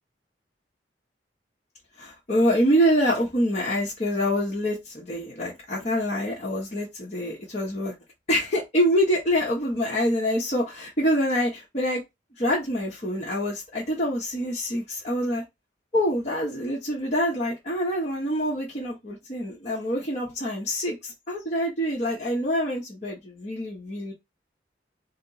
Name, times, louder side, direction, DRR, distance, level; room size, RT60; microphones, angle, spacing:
voice 1, 2.0-7.9 8.3-12.0 12.4-15.4 15.9-24.1, equal, 35° left, 1.0 m, -26 dB
4.2 x 2.0 x 4.0 m
head